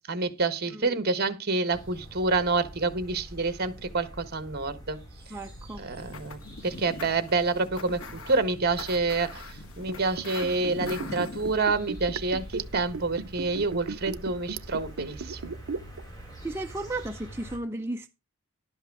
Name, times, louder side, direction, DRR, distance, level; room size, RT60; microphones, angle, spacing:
voice 1, 0.1-5.0 5.8-15.5, right 3 dB, 45° right, 1.3 m, -28 dB
sound 1, 1.7-17.6, right 1 dB, 15° left, 4.5 m, -45 dB
voice 2, 5.3-5.8 16.4-18.1, right 2 dB, 10° right, 0.5 m, -34 dB
sound 2, 6.0-11.6, left 3 dB, 85° left, 1.6 m, -42 dB
Liquid, 9.8-16.0 16.3-16.4, right 4 dB, 80° right, 0.6 m, -36 dB
11.5 x 7.8 x 4.8 m
head